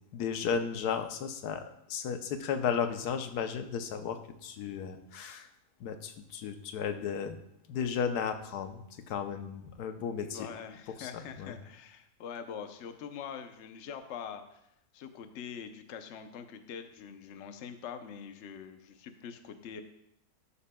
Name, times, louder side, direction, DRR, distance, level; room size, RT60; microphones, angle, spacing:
voice 1, 0.1-5.5 5.8-7.4 7.7-10.5 10.9-11.6, left 7 dB, 85° left, 8 dB, 1.2 m, -34 dB
voice 2, 10.2-14.6 14.9-19.8, left 7 dB, 55° left, 8 dB, 0.9 m, -44 dB
12.5 x 8.4 x 2.2 m, 0.79 s
omnidirectional pair, 1.6 m